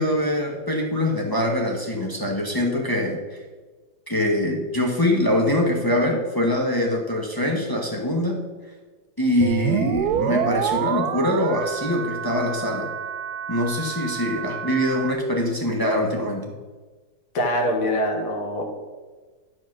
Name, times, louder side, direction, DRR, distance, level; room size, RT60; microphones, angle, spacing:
voice 1, 0.0-3.2 4.1-8.4 9.2-12.9 13.5-16.5, left 1 dB, 15° left, -1 dB, 0.7 m, -23 dB
sound 1, 9.4-15.1, right 9 dB, 75° right, 0.9 m, -27 dB
voice 2, 17.3-18.7, equal, 85° left, 1 dB, 2.3 m, -24 dB
10.5 x 5.1 x 6.0 m, 1.3 s
omnidirectional pair, 2.1 m